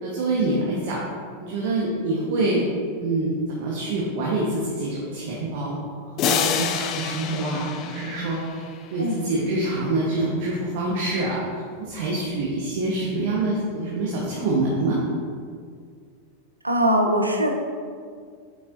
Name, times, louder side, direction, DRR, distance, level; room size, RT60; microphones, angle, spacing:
voice 1, 0.0-1.0 1.4-2.7 3.0-5.8 6.2-8.4 8.9-11.4 11.8-15.0, right 2 dB, 50° right, -5 dB, 1.1 m, -25 dB
sound 1, 6.2-8.9, left 8 dB, 35° left, 0.4 m, -27 dB
voice 2, 16.6-17.5, right 1 dB, 85° right, 2 dB, 0.7 m, -21 dB
8.0 x 6.0 x 2.6 m, 2.1 s
figure-of-eight pair, 90°, 0 cm